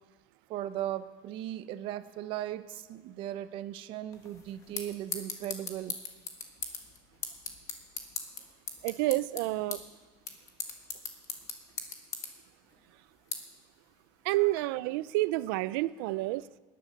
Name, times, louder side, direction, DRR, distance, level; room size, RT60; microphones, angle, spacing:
voice 1, 0.5-6.0 14.4-14.5, right 12 dB, 50° right, 12 dB, 0.9 m, -37 dB
sound 1, 4.1-14.6, left 5 dB, 30° left, 1.7 m, -42 dB
voice 2, 8.8-9.8 14.2-16.4, right 18 dB, 80° right, 17 dB, 0.6 m, -29 dB
19.5 x 10.5 x 6.6 m, 1.4 s
cardioid pair, 160°, 11 cm